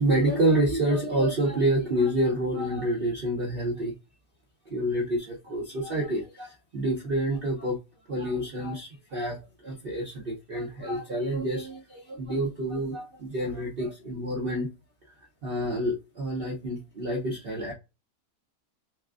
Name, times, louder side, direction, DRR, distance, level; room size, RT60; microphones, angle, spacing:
voice 1, 0.0-3.9 4.7-7.8 8.1-14.7 15.4-17.7, right 1 dB, 45° right, 0.8 m, -28 dB
5.8 x 2.1 x 2.4 m
omnidirectional pair, 1.7 m